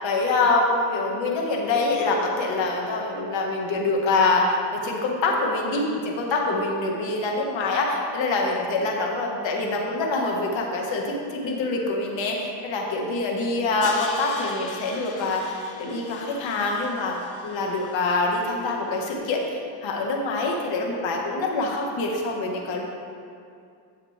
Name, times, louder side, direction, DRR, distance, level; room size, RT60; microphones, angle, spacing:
voice 1, 0.0-17.2 17.4-22.8, left 3 dB, 70° left, 0 dB, 1.7 m, -25 dB
Crash cymbal, 13.8-18.9, left 4 dB, 40° left, 1.0 m, -41 dB
11.0 x 7.2 x 3.4 m, 2.4 s
cardioid pair, 105°, 47 cm